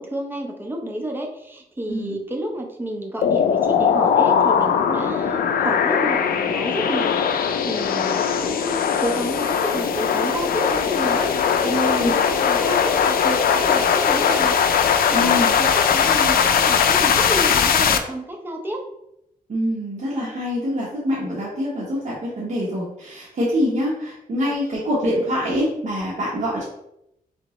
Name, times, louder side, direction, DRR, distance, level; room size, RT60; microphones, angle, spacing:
voice 1, 0.0-18.8 24.4-24.6, right 1 dB, 15° right, 1 dB, 0.7 m, -30 dB
voice 2, 1.9-2.2 11.9-12.1 15.1-15.5 19.5-26.7, equal, 50° right, -6 dB, 1.0 m, -25 dB
sound 1, 3.2-18.0, left 7 dB, 80° left, 0.4 m, -20 dB
3.9 x 3.4 x 3.0 m, 0.82 s
wide cardioid pair, 125°, 15 cm